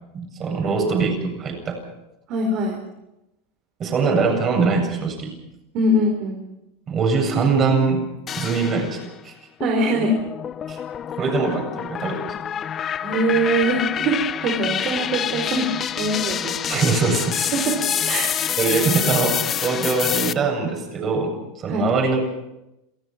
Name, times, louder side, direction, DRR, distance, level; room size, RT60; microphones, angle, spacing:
voice 1, 0.1-1.8 3.8-5.3 6.9-8.0 8.4-9.3 10.7-10.8 11.2-12.3 16.7-17.5 18.6-22.3, right 4 dB, 35° right, 3 dB, 8.0 m, -22 dB
voice 2, 2.3-2.8 5.7-6.4 9.6-10.1 13.0-15.7 16.0-16.6 17.5-17.8 18.0-18.3 21.7-21.9, right 1 dB, 50° right, 2 dB, 4.6 m, -22 dB
sound 1, 8.3-9.1 9.6-20.3, left 9 dB, 30° left, 0.7 m, -27 dB
27.5 x 17.5 x 6.1 m, 0.91 s
hypercardioid pair, 110°, 0 cm